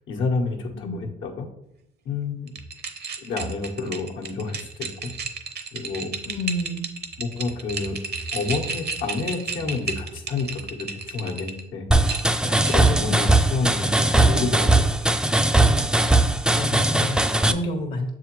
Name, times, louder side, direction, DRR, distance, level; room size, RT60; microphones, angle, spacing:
voice 1, 0.1-1.5 2.0-2.5 3.2-5.1 5.7-6.1 7.2-8.0 8.3-11.9 12.4-14.9, left 4 dB, 80° left, -1 dB, 1.1 m, -29 dB
sound 1, 2.5-11.6 12.1-13.0, right 4 dB, 55° right, 0.7 m, -33 dB
voice 2, 6.3-6.9 13.0-13.2 16.2-18.1, left 1 dB, 55° left, 4 dB, 0.9 m, -30 dB
sound 2, 11.9-17.5, right 1 dB, 5° right, 0.3 m, -19 dB
6.6 x 4.7 x 3.1 m, 0.77 s
cardioid pair, 90°, 20 cm